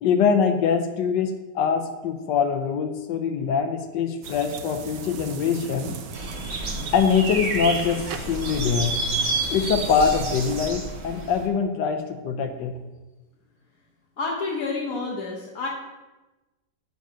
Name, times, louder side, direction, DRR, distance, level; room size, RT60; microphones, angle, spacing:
voice 1, 0.0-6.0 6.9-8.9 9.5-12.7, left 6 dB, 80° left, 6 dB, 1.3 m, -23 dB
sound 1, 4.2-10.7, right 5 dB, 60° right, 0.9 m, -38 dB
sound 2, 6.1-11.4, right 2 dB, 40° right, 1.3 m, -30 dB
Crackle, 7.5-9.2, right 5 dB, 80° right, 1.4 m, -40 dB
voice 2, 14.2-15.7, left 3 dB, 55° left, -3 dB, 1.3 m, -29 dB
9.5 x 3.9 x 7.3 m, 1.1 s
omnidirectional pair, 1.9 m